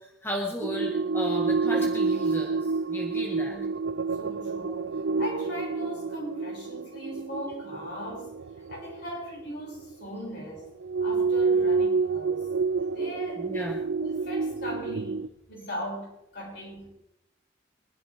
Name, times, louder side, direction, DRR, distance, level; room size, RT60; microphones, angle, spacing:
voice 1, 0.2-2.6 2.9-3.5 13.4-13.8, left 1 dB, 10° left, -1 dB, 1.8 m, -34 dB
sound 1, 0.6-9.8 10.8-15.3, right 4 dB, 70° right, 0.5 m, -28 dB
voice 2, 4.2-8.3 8.7-10.7 11.0-12.5 12.9-15.2 15.5-16.9, equal, 60° left, -4 dB, 6.7 m, -39 dB
23.5 x 11.5 x 3.6 m, 0.84 s
head